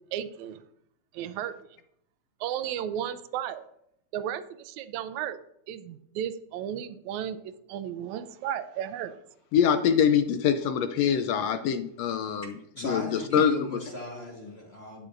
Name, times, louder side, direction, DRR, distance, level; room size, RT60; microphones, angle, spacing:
voice 1, 0.1-0.6 1.1-1.6 2.4-3.7 4.1-5.4 5.7-9.2, right 10 dB, 85° right, 12 dB, 1.9 m, -34 dB
voice 2, 9.5-12.5 12.8-13.5, left 8 dB, 80° left, 9 dB, 1.5 m, -24 dB
voice 3, 12.7-15.1, equal, 30° left, -1 dB, 1.1 m, -36 dB
11.5 x 9.7 x 2.5 m, 0.74 s
omnidirectional pair, 3.3 m